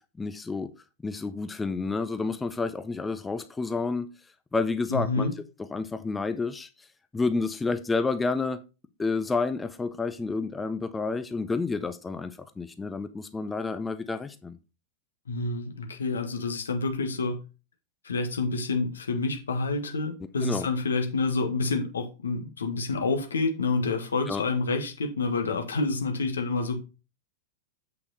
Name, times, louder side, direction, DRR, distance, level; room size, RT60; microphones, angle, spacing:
voice 1, 0.2-0.7 1.0-4.1 4.5-5.3 5.7-6.7 7.1-8.6 9.0-14.6 20.4-20.7 24.3-24.4, left 4 dB, 10° left, 0.6 m, -29 dB
voice 2, 4.9-5.3 15.3-17.4 18.0-26.8, left 3 dB, 70° left, 1.5 m, -28 dB
8.1 x 5.8 x 3.9 m
figure-of-eight pair, 90°, 0 cm